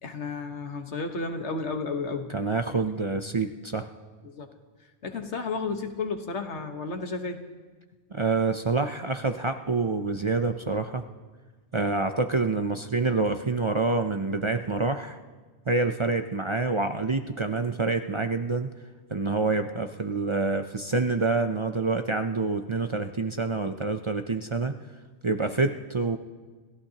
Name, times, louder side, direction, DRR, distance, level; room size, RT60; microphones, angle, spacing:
voice 1, 0.0-2.3 4.2-4.5 5.0-7.4, left 4 dB, 90° left, 6 dB, 1.6 m, -32 dB
voice 2, 2.3-3.9 8.1-11.0 11.7-15.2 15.7-18.7 19.1-24.7 25.2-26.2, right 3 dB, 35° right, 7 dB, 0.5 m, -27 dB
29.0 x 15.0 x 2.9 m, 1.4 s
omnidirectional pair, 1.1 m